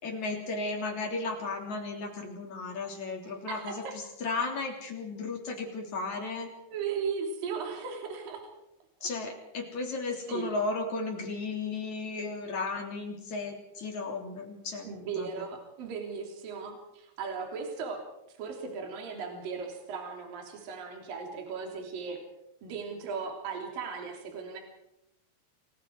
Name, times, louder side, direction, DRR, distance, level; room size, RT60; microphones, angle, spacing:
voice 1, 0.0-6.5 9.0-14.9 15.1-15.5, left 3 dB, 40° left, 1 dB, 4.2 m, -35 dB
voice 2, 3.2-3.9 6.7-8.4 9.0-9.1 10.3-10.5 14.8-18.0 18.4-22.2 22.6-24.6, right 5 dB, 50° right, 2 dB, 4.7 m, -37 dB
29.0 x 20.5 x 4.7 m, 0.85 s
omnidirectional pair, 5.3 m